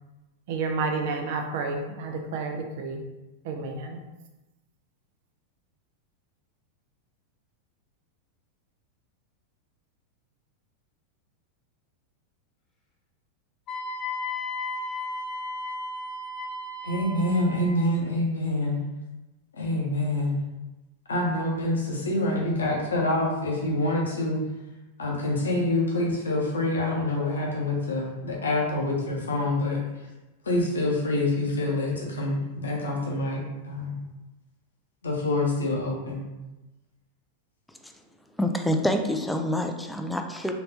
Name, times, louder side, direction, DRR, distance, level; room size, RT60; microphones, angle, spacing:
voice 1, 0.5-3.0 3.4-4.0, right 4 dB, 50° right, 3 dB, 0.6 m, -30 dB
Wind instrument woodwind instrument, 13.7-17.8, left 2 dB, 35° left, 0.8 m, -34 dB
voice 2, 16.8-18.8 19.6-20.4 21.1-24.4 25.0-29.8 30.5-34.0 35.0-36.2, left 1 dB, 70° left, -2 dB, 0.9 m, -26 dB
voice 3, 38.4-40.5, left 1 dB, 5° left, 5 dB, 0.4 m, -26 dB
4.0 x 3.2 x 2.9 m, 1.0 s
figure-of-eight pair, 90°, 0 cm